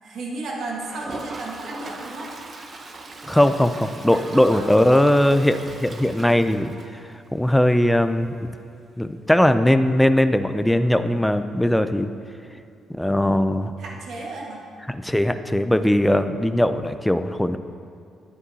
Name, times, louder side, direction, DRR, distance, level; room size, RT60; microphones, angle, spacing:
voice 1, 0.0-2.3 4.1-5.2 13.8-14.7, right 2 dB, 65° right, -2 dB, 1.4 m, -34 dB
Toilet flush, 0.8-7.5 7.8-7.9 8.1-8.2 8.5-8.6 11.1-11.2 12.5-12.6, right 3 dB, 40° right, 0.8 m, -40 dB
voice 2, 3.3-7.0 7.3-8.3 9.0-12.1 12.9-13.7 14.9-17.6, left 1 dB, 5° left, 9 dB, 0.4 m, -19 dB
9.6 x 9.3 x 2.7 m, 2.4 s
cardioid pair, 90°, 0 cm